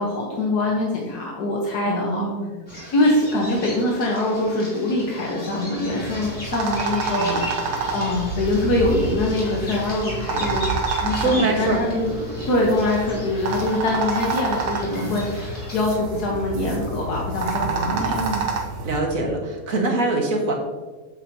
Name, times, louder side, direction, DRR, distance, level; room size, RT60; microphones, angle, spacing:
voice 1, 0.0-2.3 2.9-12.1 12.5-18.1, left 2 dB, 85° left, -2 dB, 1.6 m, -24 dB
voice 2, 1.9-2.5 7.2-7.4 11.2-11.8 15.0-15.2 17.5-18.5 18.8-20.5, right 2 dB, 60° right, 0 dB, 1.9 m, -24 dB
Bird vocalization bird call bird song, 2.7-15.8, left 1 dB, 45° left, 2.9 m, -36 dB
sound 1, 5.8-19.0, right 3 dB, 90° right, 1.4 m, -28 dB
8.9 x 7.3 x 2.8 m, 1.3 s
omnidirectional pair, 1.6 m